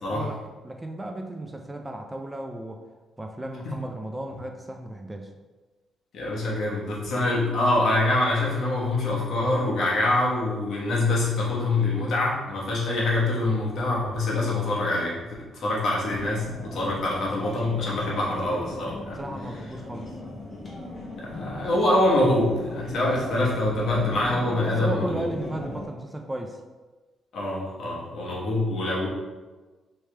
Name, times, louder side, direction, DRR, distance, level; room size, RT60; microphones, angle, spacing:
voice 1, 0.1-2.8 3.2-5.3 19.2-20.1 24.8-26.6, right 1 dB, 15° right, 3 dB, 0.3 m, -35 dB
voice 2, 6.1-19.2 21.2-25.2 27.3-29.1, left 2 dB, 65° left, -4 dB, 1.1 m, -25 dB
sound 1, 16.1-25.9, left 1 dB, 30° left, 1.0 m, -37 dB
3.2 x 2.9 x 3.3 m, 1.3 s
cardioid pair, 90°, 0 cm